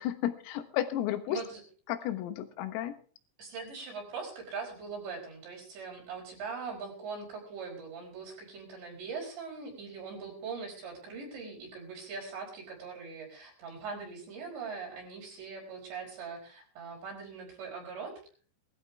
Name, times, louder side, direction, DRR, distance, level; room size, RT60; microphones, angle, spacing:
voice 1, 0.0-1.4 1.9-2.9, left 12 dB, 90° left, 9 dB, 4.0 m, -32 dB
voice 2, 1.3-1.6 3.4-18.1, right 5 dB, 60° right, -2 dB, 6.9 m, -41 dB
20.0 x 14.0 x 3.5 m, 0.41 s
omnidirectional pair, 5.9 m